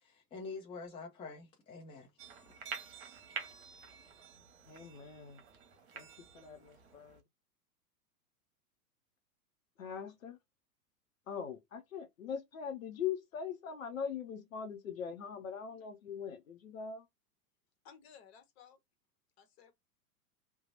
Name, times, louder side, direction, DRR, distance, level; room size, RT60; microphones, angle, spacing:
voice 1, 0.0-2.1, left 4 dB, 10° left, 0.7 m, -46 dB
sound 1, 2.2-7.2, right 6 dB, 45° right, 1.0 m, -48 dB
voice 2, 4.6-5.4 5.9-7.2 9.8-10.4 11.3-17.1, left 7 dB, 60° left, 0.7 m, -41 dB
voice 3, 17.8-18.8 19.4-19.7, left 7 dB, 45° left, 1.0 m, -58 dB
2.8 x 2.2 x 4.0 m
figure-of-eight pair, 95°, 46 cm